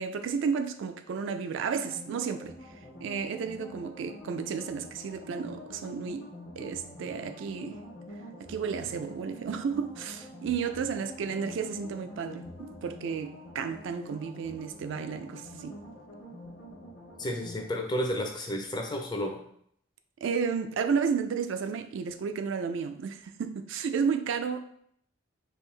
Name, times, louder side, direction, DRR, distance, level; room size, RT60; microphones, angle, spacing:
voice 1, 0.0-2.5 3.0-6.3 6.6-7.8 8.4-15.8 20.2-24.8, right 6 dB, 65° right, 0.3 m, -32 dB
sound 1, 1.7-17.7, left 1 dB, 50° left, 0.9 m, -46 dB
voice 2, 17.2-19.4, equal, 20° left, 0.5 m, -32 dB
3.5 x 2.6 x 3.2 m
head